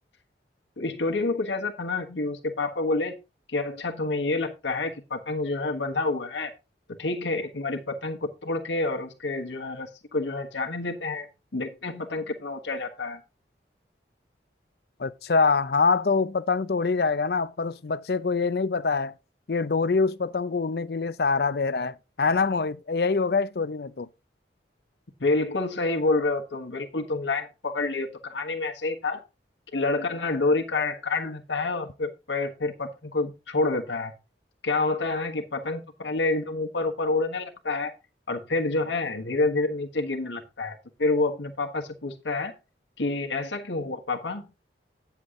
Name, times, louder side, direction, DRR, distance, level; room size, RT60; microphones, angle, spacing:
voice 1, 0.8-3.1 3.5-6.5 6.9-11.3 11.5-13.2 25.2-29.2 29.7-34.1 34.6-37.9 38.3-42.5 43.0-44.4, left 3 dB, 85° left, 1.3 m, -28 dB
voice 2, 15.0-19.1 19.5-24.1, left 4 dB, 60° left, 0.5 m, -25 dB
9.9 x 7.2 x 3.7 m
head